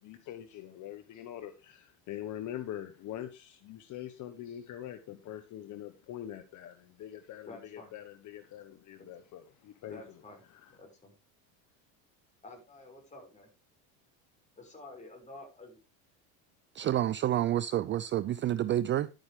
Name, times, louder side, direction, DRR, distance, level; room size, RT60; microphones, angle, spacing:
voice 1, 0.0-10.0 10.5-10.7, left 11 dB, 45° left, 1.3 m, -43 dB
voice 2, 7.5-7.9 9.0-9.1 9.8-10.4 10.7-11.1 12.4-13.5 14.6-15.8, left 2 dB, 15° left, 6.1 m, -50 dB
voice 3, 16.7-19.1, right 12 dB, 30° right, 0.4 m, -29 dB
11.5 x 9.0 x 3.5 m
supercardioid pair, 120°, 40 cm